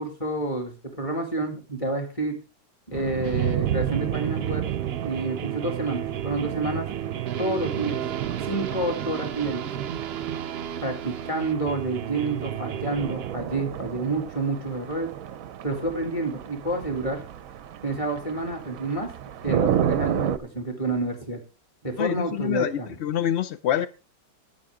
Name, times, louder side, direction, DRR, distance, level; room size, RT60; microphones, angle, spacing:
voice 1, 0.0-2.4 2.9-4.6 5.0-6.9 7.4-8.0 8.4-9.7 10.8-15.1 15.6-17.2 17.8-19.1 19.4-21.4 21.8-22.9, right 2 dB, 20° left, 2.4 m, -29 dB
sound 1, 2.9-20.4, right 10 dB, 65° right, 0.9 m, -32 dB
sound 2, 3.2-13.4, right 10 dB, 80° right, 0.5 m, -33 dB
voice 2, 22.0-23.9, left 11 dB, 85° left, 0.5 m, -26 dB
11.5 x 8.8 x 3.7 m
omnidirectional pair, 1.9 m